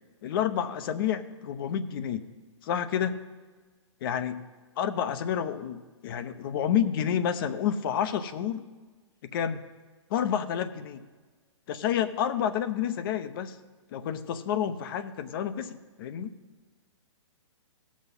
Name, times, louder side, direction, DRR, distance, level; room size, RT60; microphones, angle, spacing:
voice 1, 0.2-2.2 2.6-3.2 4.0-4.5 4.8-8.6 9.2-9.6 10.1-11.0 11.7-13.6 13.9-16.3, left 9 dB, 45° left, 11 dB, 0.8 m, -29 dB
17.0 x 6.3 x 5.5 m, 1.4 s
hypercardioid pair, 125°, 16 cm